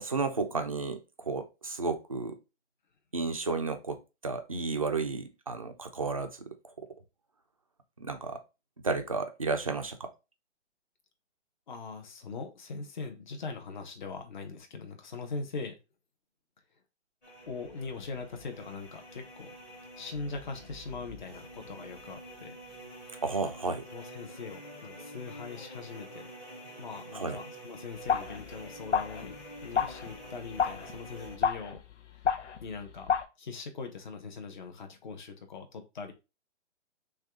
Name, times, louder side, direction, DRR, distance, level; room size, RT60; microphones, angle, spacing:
voice 1, 0.0-2.4 3.1-6.3 8.0-8.4 8.8-10.1 23.2-23.8 27.1-27.4, right 3 dB, 30° right, 6 dB, 0.4 m, -32 dB
voice 2, 11.7-15.8 17.5-19.5 20.0-22.5 23.9-26.3 26.8-31.8 32.3-33.1 33.4-36.1, left 4 dB, 40° left, 5 dB, 0.9 m, -41 dB
sound 1, 17.2-31.4, right 1 dB, 15° left, 0.9 m, -48 dB
sound 2, 28.1-33.2, left 7 dB, 75° left, 0.8 m, -32 dB
6.3 x 2.4 x 3.6 m, 0.28 s
hypercardioid pair, 170°, 35 cm